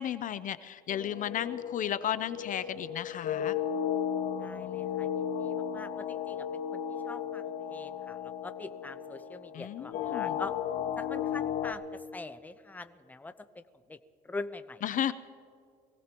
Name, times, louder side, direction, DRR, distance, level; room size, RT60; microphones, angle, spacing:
voice 1, 0.0-3.6 9.5-10.4 14.8-15.1, left 10 dB, 50° left, 14 dB, 0.5 m, -34 dB
sound 1, 0.9-11.7, left 9 dB, 75° left, 1.3 m, -35 dB
voice 2, 4.4-6.5 6.7-10.5 11.0-11.8 12.1-13.6 13.9-14.0 14.2-14.8, left 3 dB, 10° left, 10 dB, 0.6 m, -44 dB
23.5 x 17.0 x 3.0 m, 2.3 s
cardioid pair, 110°, 17 cm